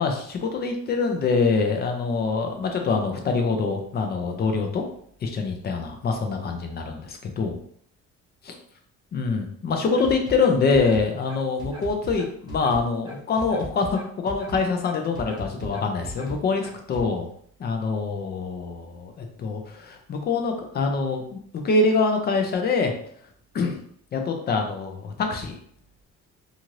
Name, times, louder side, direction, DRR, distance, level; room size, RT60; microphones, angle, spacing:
voice 1, 0.0-4.8 5.2-7.6 8.4-8.5 9.1-16.6 16.9-17.3 17.6-22.9 23.5-23.8 24.1-25.6, left 4 dB, 35° left, 4 dB, 0.5 m, -25 dB
sound 1, 9.9-17.0, right 1 dB, 15° right, 0.8 m, -38 dB
2.7 x 2.5 x 3.0 m, 0.64 s
cardioid pair, 150°, 30 cm